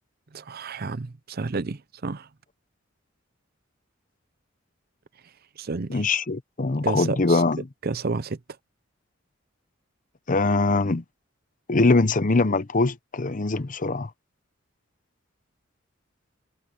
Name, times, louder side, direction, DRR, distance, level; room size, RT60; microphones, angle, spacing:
voice 1, 0.3-2.3 5.6-6.1 6.8-7.4 7.8-8.4, right 4 dB, 50° right, 0.6 m, -30 dB
voice 2, 5.9-7.7 10.3-11.0 11.7-14.1, left 3 dB, 40° left, 0.8 m, -22 dB
head